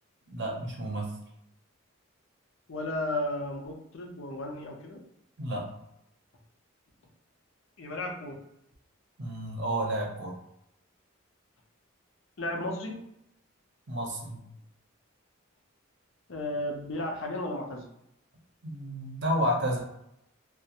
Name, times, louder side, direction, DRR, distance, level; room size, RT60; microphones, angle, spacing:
voice 1, 0.3-1.1 5.4-5.7 9.2-10.4 13.9-14.4 18.6-19.8, equal, 55° right, 0 dB, 0.6 m, -31 dB
voice 2, 2.7-5.0 7.8-8.4 12.4-13.0 16.3-17.8, left 1 dB, 65° left, 1 dB, 0.6 m, -34 dB
2.4 x 2.1 x 2.8 m, 0.79 s
head